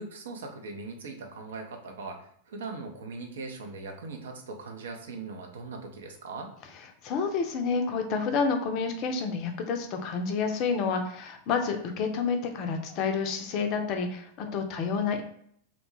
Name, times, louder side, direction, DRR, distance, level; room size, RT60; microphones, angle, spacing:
voice 1, 0.0-6.5, right 3 dB, 60° right, 3 dB, 0.4 m, -40 dB
voice 2, 7.0-15.2, left 5 dB, 40° left, 5 dB, 0.4 m, -29 dB
2.5 x 2.1 x 2.9 m, 0.65 s
figure-of-eight pair, 90°, 0 cm